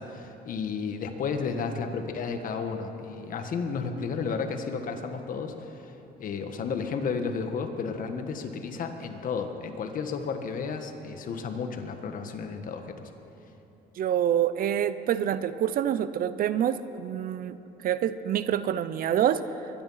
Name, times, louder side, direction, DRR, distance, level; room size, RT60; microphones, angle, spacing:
voice 1, 0.0-5.9 6.2-13.1, left 5 dB, 55° left, 6 dB, 1.5 m, -32 dB
voice 2, 14.0-17.6 17.8-19.4, right 10 dB, 60° right, 14 dB, 0.7 m, -26 dB
22.5 x 11.0 x 5.7 m, 3.0 s
cardioid pair, 110°, 17 cm